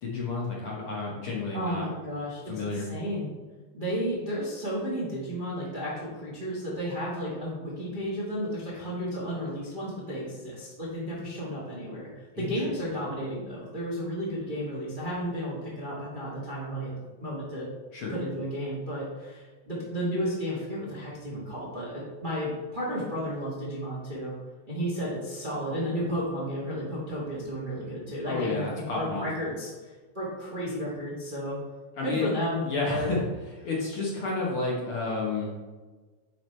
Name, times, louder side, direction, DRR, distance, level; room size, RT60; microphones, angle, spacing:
voice 1, 0.0-1.9 2.5-2.9 12.3-12.7 17.9-18.1 28.3-29.2 32.0-32.3 32.6-35.5, left 3 dB, 60° left, -4 dB, 1.6 m, -31 dB
voice 2, 1.5-3.3 3.7-12.1 12.4-16.9 17.2-17.7 18.1-24.3 24.7-29.7 30.1-31.6 32.0-33.1, equal, 30° right, -6 dB, 0.9 m, -33 dB
9.0 x 5.0 x 3.2 m, 1.3 s
omnidirectional pair, 3.4 m